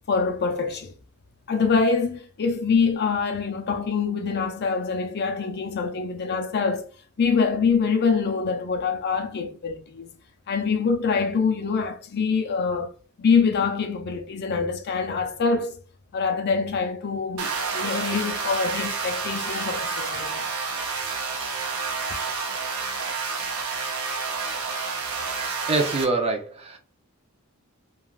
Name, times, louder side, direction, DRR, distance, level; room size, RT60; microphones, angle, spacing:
voice 1, 0.1-0.9 1.5-6.9 7.2-10.1 10.5-12.9 13.2-15.8 16.1-20.4, left 5 dB, 50° left, 0.5 m, -25 dB
sound 1, 17.4-26.0, right 4 dB, 75° right, 0.7 m, -29 dB
voice 2, 25.7-26.8, right 3 dB, 25° right, 0.5 m, -24 dB
3.2 x 2.4 x 2.3 m
head